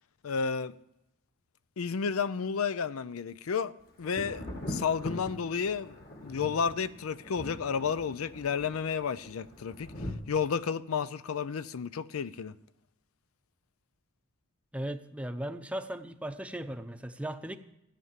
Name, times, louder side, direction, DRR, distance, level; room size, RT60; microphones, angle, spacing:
voice 1, 0.2-0.7 1.8-3.7 4.0-6.0 6.2-9.9 10.3-12.5, left 6 dB, 85° left, 0.5 m, -31 dB
Thunder, 4.0-10.1, left 1 dB, 45° left, 2.0 m, -42 dB
voice 2, 14.7-17.6, right 1 dB, 5° right, 0.6 m, -37 dB
14.0 x 9.4 x 7.4 m
head